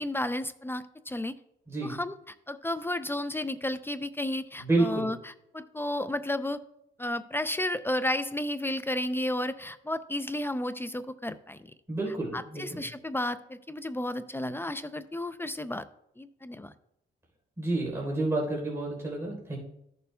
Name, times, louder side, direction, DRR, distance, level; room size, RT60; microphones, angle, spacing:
voice 1, 0.0-1.3 1.8-6.6 7.0-11.6 12.3-15.8 16.2-16.7, left 1 dB, 10° left, 12 dB, 0.5 m, -32 dB
voice 2, 4.6-5.1 11.9-12.8 17.6-19.6, right 2 dB, 15° right, -3 dB, 3.6 m, -29 dB
14.5 x 6.9 x 2.2 m, 0.78 s
cardioid pair, 90°, 20 cm